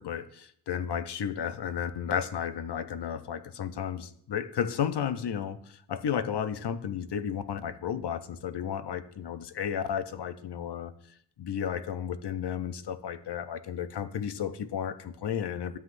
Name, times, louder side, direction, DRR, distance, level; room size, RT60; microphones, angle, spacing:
voice 1, 0.0-10.9 11.4-15.8, left 8 dB, 65° left, 11 dB, 0.7 m, -33 dB
12.5 x 7.8 x 2.6 m, 0.65 s
wide cardioid pair, 115°, 44 cm